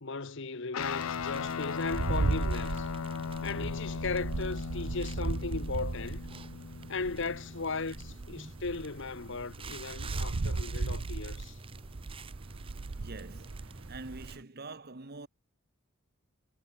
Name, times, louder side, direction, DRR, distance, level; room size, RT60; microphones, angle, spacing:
voice 1, 0.0-2.9 3.4-6.2 6.9-11.6, left 4 dB, 60° left, 1.2 m, -37 dB
Guitar, 0.7-8.4, left 6 dB, 85° left, 0.6 m, -38 dB
sound 1, 0.8-14.4, right 3 dB, 25° right, 0.8 m, -46 dB
sound 2, 1.9-7.4 7.9-14.4, right 3 dB, 80° right, 0.8 m, -36 dB
voice 2, 13.0-15.3, right 3 dB, 50° right, 1.4 m, -45 dB
head